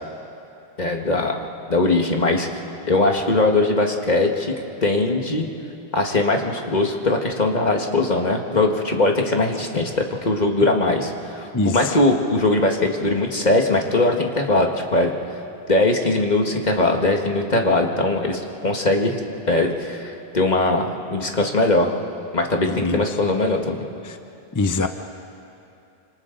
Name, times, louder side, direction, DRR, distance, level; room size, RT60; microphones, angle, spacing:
voice 1, 0.8-2.5 2.9-4.5 4.8-5.4 5.9-15.1 15.7-19.2 19.5-21.9 22.3-23.8, left 2 dB, 40° left, 2 dB, 1.7 m, -20 dB
voice 2, 24.6-24.9, left 3 dB, 20° left, 7 dB, 0.5 m, -21 dB
29.0 x 26.5 x 3.9 m, 2.7 s
omnidirectional pair, 1.1 m